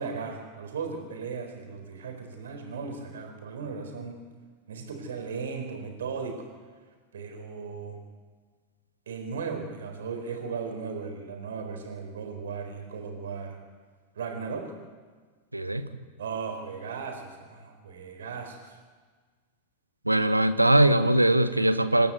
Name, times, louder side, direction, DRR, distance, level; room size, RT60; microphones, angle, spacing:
voice 1, 0.0-4.2 4.7-6.5 7.1-8.0 9.1-13.6 14.1-14.7 16.2-18.8, right 5 dB, 65° right, 3 dB, 4.4 m, -36 dB
voice 2, 15.5-15.9 20.1-22.1, right 1 dB, 85° right, 12 dB, 1.0 m, -21 dB
27.0 x 12.5 x 8.2 m, 1.5 s
figure-of-eight pair, 90°, 0 cm